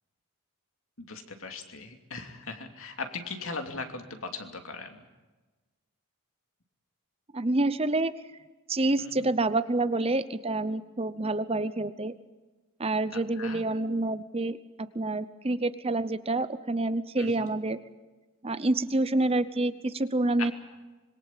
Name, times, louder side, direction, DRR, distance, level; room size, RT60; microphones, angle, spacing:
voice 1, 1.0-5.0 9.0-9.3 13.1-13.6 17.2-17.5 20.4-20.5, left 4 dB, 65° left, 5 dB, 2.8 m, -39 dB
voice 2, 7.3-8.1 8.7-12.1 12.8-17.8 18.4-20.5, right 2 dB, 25° right, 13 dB, 0.8 m, -28 dB
26.0 x 22.0 x 7.5 m, 1.2 s
head